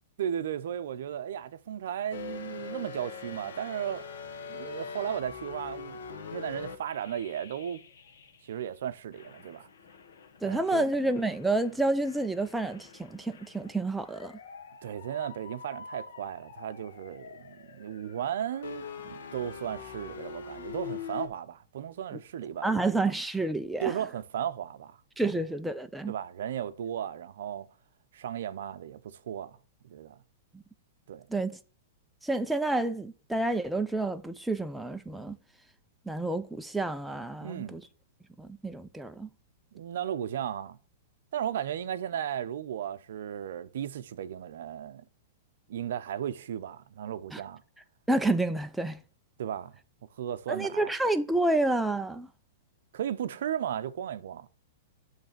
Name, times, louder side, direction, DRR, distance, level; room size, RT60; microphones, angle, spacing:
voice 1, 0.2-4.0 4.5-6.0 6.3-7.8 8.4-9.7 10.4-10.9 14.8-22.8 23.8-25.0 25.2-25.4 26.1-27.7 28.1-29.6 29.8-30.1 31.1-31.3 37.4-37.8 39.7-40.8 41.3-45.0 45.7-47.6 49.4-49.7 50.2-50.9 52.9-54.5, right 9 dB, 70° right, 0.5 m, -35 dB
sound 1, 2.1-8.7 9.1-21.3, left 6 dB, 85° left, 1.3 m, -44 dB
voice 2, 10.4-14.4 22.1-22.2 22.6-24.0 25.2-26.1 31.3-31.5 32.2-35.4 36.1-37.8 38.4-39.3 47.3-47.4 48.1-49.0 50.5-52.3, right 2 dB, 5° right, 0.3 m, -29 dB
8.8 x 3.3 x 6.6 m
hypercardioid pair, 155°, 0 cm